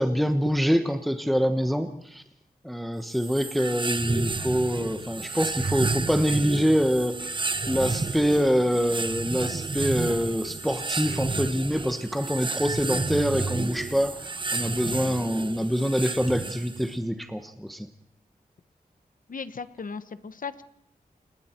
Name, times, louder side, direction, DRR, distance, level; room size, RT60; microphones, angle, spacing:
voice 1, 0.0-2.2 2.6-7.1 7.7-14.2 14.5-17.9, equal, ahead, 8 dB, 1.2 m, -25 dB
sound 1, 3.1-17.0, right 3 dB, 30° right, 0.9 m, -31 dB
voice 2, 19.3-20.6, left 5 dB, 60° left, 13 dB, 1.2 m, -36 dB
29.0 x 20.0 x 4.5 m, 0.74 s
wide cardioid pair, 80°, 16 cm